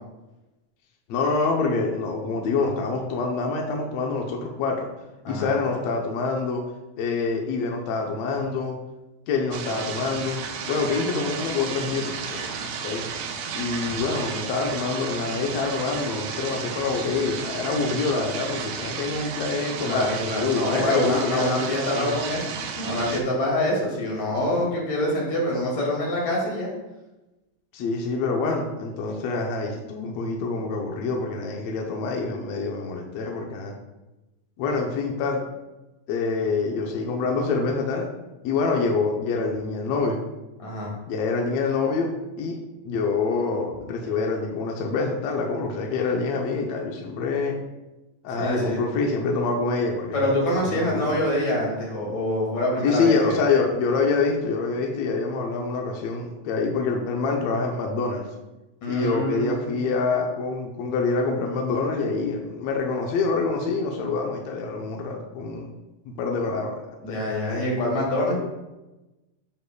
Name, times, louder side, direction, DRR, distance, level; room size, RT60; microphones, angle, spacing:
voice 1, 1.1-4.9 5.3-6.6 7.0-8.7 9.3-10.4 10.7-12.5 12.8-13.0 13.5-22.1 27.7-33.7 34.6-35.4 36.1-38.1 38.4-40.2 41.1-42.1 42.4-42.6 42.8-47.6 48.2-50.3 50.6-51.2 52.8-58.2 58.9-65.7 66.0-66.8 67.1-67.2, left 4 dB, 75° left, 1 dB, 1.5 m, -26 dB
sound 1, 9.5-23.2, right 6 dB, 75° right, 2.3 m, -33 dB
voice 2, 19.8-22.5 22.7-26.7 40.6-40.9 48.4-48.8 50.1-53.4 58.8-59.7 67.0-68.4, left 1 dB, 55° left, -3 dB, 3.4 m, -25 dB
10.0 x 6.6 x 2.2 m, 1.0 s
omnidirectional pair, 3.9 m